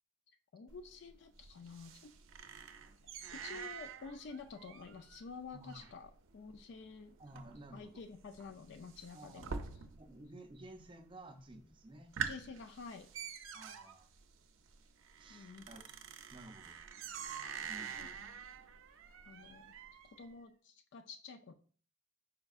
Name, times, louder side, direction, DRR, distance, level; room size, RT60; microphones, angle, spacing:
voice 1, 0.5-2.1 3.3-7.2 7.7-9.6 12.2-13.1 15.3-15.8 18.0-18.1 19.3-19.7 20.0-21.5, left 4 dB, 60° left, 7 dB, 0.4 m, -50 dB
sound 1, 0.7-10.3 10.5-11.1 11.5-11.6 11.9-20.3, right 6 dB, 80° right, 0.5 m, -47 dB
voice 2, 5.5-5.9 7.2-8.0 9.1-9.6 9.9-12.1 13.5-14.1 15.2-15.8 16.3-16.8 17.7-18.1, right 1 dB, 25° right, 7 dB, 0.4 m, -54 dB
5.0 x 4.5 x 2.4 m, 0.43 s
head